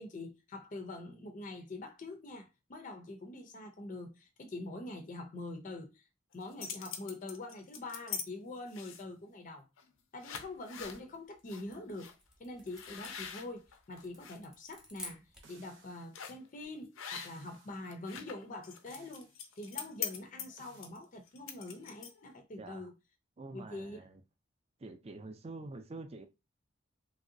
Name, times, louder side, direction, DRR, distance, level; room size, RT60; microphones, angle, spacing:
voice 1, 0.0-6.0 6.3-9.7 10.1-12.1 12.4-19.3 19.6-22.9 23.5-24.0, left 2 dB, 40° left, 0.5 m, -44 dB
sound 1, 6.3-8.3 8.7-9.2 9.8-9.9 10.2-11.0 11.5-11.6 12.0-12.1 12.7-14.4 14.8-15.1 16.1-16.5 17.0-17.6 17.8-22.3, left 8 dB, 85° left, 0.5 m, -43 dB
sound 2, 11.0-15.6, equal, 5° right, 0.8 m, -53 dB
sound 3, 15.4-16.2 17.1-17.9 18.9-19.4 20.6-20.9, right 4 dB, 70° right, 0.8 m, -60 dB
voice 2, 22.6-22.9 23.4-24.2 24.8-26.3, right 3 dB, 30° right, 0.4 m, -46 dB
3.1 x 2.7 x 2.6 m
head